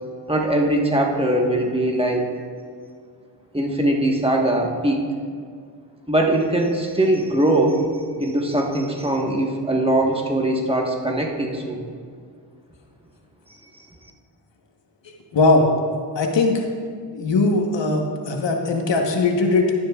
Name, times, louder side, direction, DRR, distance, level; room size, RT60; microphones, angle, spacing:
voice 1, 0.3-2.2 3.5-5.0 6.1-7.8 8.2-11.8, right 1 dB, 10° right, 0 dB, 1.3 m, -21 dB
voice 2, 15.3-15.7 16.1-16.7 17.1-19.7, left 3 dB, 65° left, 2 dB, 1.2 m, -19 dB
12.0 x 10.0 x 2.4 m, 2.1 s
cardioid pair, 65°, 47 cm